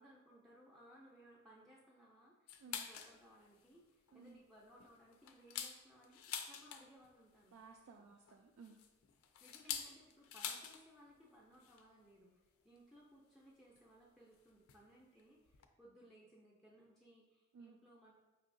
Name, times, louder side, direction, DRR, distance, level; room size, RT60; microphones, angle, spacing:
voice 1, 0.0-7.6 8.0-8.1 9.4-12.3 12.6-18.1, equal, ahead, -5 dB, 0.5 m, -63 dB
sound 1, 2.5-3.2 3.6-3.7 4.1-4.3 4.8-7.1 8.3-10.8 11.1-11.2 11.5-11.8 12.8-12.9 13.7-13.8 14.7-14.9 15.2-15.3 15.5-15.6, left 8 dB, 85° left, 0.4 m, -46 dB
voice 2, 7.5-8.8 17.5-17.8, right 5 dB, 85° right, 3 dB, 0.3 m, -57 dB
5.4 x 2.7 x 2.5 m, 1.1 s
head